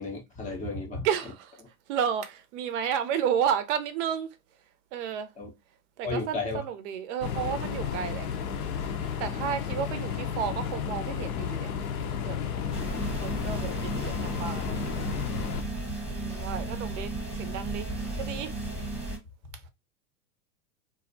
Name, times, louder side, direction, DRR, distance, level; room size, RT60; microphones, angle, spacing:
voice 1, 0.0-1.1 5.4-5.5 6.0-6.6 9.2-9.5 12.6-12.8 13.6-13.7, left 3 dB, 20° left, 0.5 m, -34 dB
voice 2, 1.0-1.5 1.9-4.3 4.9-5.3 6.0-8.3 9.2-11.7 12.2-12.4 13.1-14.6 16.1-17.9 18.2-18.5, right 8 dB, 55° right, 0.5 m, -31 dB
sound 1, 7.2-15.6, left 7 dB, 80° left, 0.6 m, -32 dB
sound 2, 12.7-19.2, right 2 dB, ahead, 0.9 m, -34 dB
2.4 x 2.0 x 2.6 m
hypercardioid pair, 105°, 43 cm